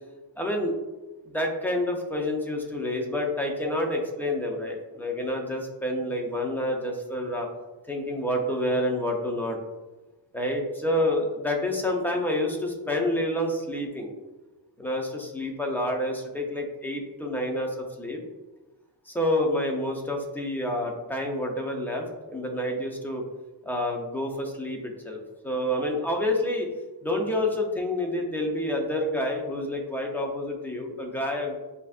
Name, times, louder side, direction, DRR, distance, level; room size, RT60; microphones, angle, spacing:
voice 1, 0.4-0.8 1.2-7.5 7.9-9.6 10.3-14.1 14.8-18.2 19.1-23.2 23.6-26.7 27.0-31.6, left 1 dB, 5° left, 0 dB, 0.6 m, -28 dB
7.8 x 2.8 x 2.5 m, 1.1 s
wide cardioid pair, 165°, 43 cm